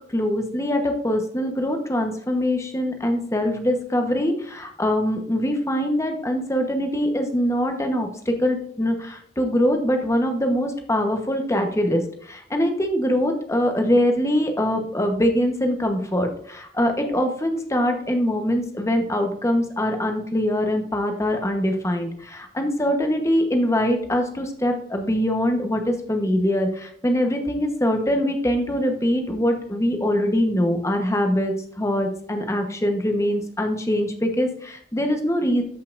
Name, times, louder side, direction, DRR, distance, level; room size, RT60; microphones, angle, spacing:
voice 1, 0.1-35.6, equal, 15° left, 4 dB, 1.1 m, -23 dB
13.5 x 5.6 x 2.6 m, 0.62 s
head